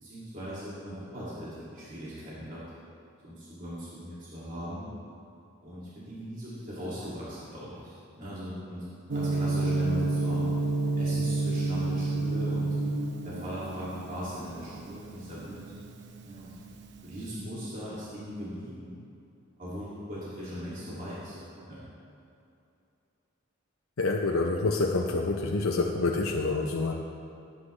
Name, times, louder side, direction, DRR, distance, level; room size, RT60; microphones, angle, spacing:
voice 1, 0.0-2.6 3.2-4.9 5.6-8.8 9.1-10.5 11.0-12.8 13.2-15.7 16.2-16.5 17.0-19.0 19.6-21.8, equal, 40° right, -9 dB, 2.5 m, -39 dB
Gong, 9.1-17.2, right 3 dB, 55° right, 0.8 m, -30 dB
voice 2, 24.0-26.9, left 3 dB, 90° left, 1 dB, 0.7 m, -27 dB
18.0 x 9.9 x 3.3 m, 2.6 s
head